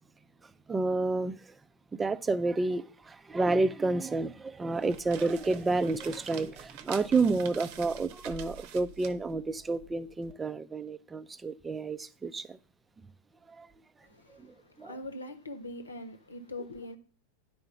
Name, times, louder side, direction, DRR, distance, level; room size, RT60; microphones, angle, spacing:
voice 1, 0.7-1.4 1.9-12.6 13.5-13.7 14.4-14.9, right 3 dB, 15° right, 0.5 m, -30 dB
sound 1, 4.7-10.3, right 8 dB, 45° right, 0.8 m, -47 dB
voice 2, 14.0-17.0, left 1 dB, 75° left, 1.2 m, -43 dB
10.5 x 4.8 x 6.7 m
figure-of-eight pair, 90°, 0 cm